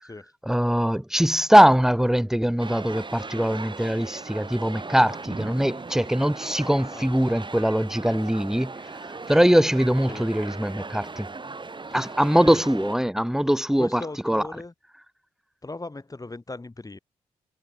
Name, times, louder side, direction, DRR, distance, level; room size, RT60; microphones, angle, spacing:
voice 1, 0.4-8.7 9.3-11.3 11.9-14.4, equal, 5° right, 2.8 m, -21 dB
sound 1, 2.6-13.0, right 3 dB, 35° right, 5.6 m, -38 dB
voice 2, 13.8-14.7 15.6-17.0, left 2 dB, 25° left, 5.8 m, -38 dB
supercardioid pair, 50°, 14 cm